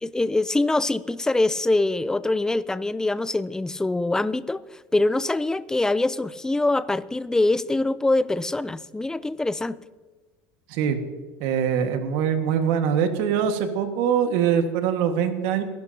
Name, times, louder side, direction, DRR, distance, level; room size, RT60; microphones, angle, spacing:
voice 1, 0.0-9.8, left 2 dB, 5° left, 16 dB, 0.4 m, -24 dB
voice 2, 10.7-11.0 11.4-15.6, right 8 dB, 70° right, 6 dB, 1.7 m, -23 dB
23.0 x 11.5 x 2.9 m, 1.3 s
supercardioid pair, 125°, 8 cm